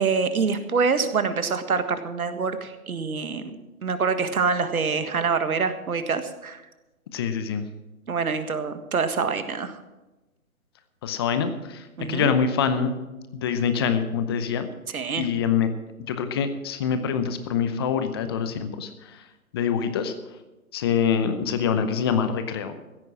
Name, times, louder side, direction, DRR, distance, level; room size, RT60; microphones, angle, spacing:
voice 1, 0.0-6.6 8.1-9.8 12.0-12.3 14.9-15.3, right 5 dB, 75° right, 10 dB, 1.7 m, -26 dB
voice 2, 7.1-7.7 11.0-12.9 13.3-14.7 15.2-15.7 16.1-19.2 19.5-20.1 20.7-22.8, left 7 dB, 20° left, 10 dB, 0.6 m, -25 dB
15.5 x 9.1 x 6.1 m, 1.1 s
hypercardioid pair, 140°, 44 cm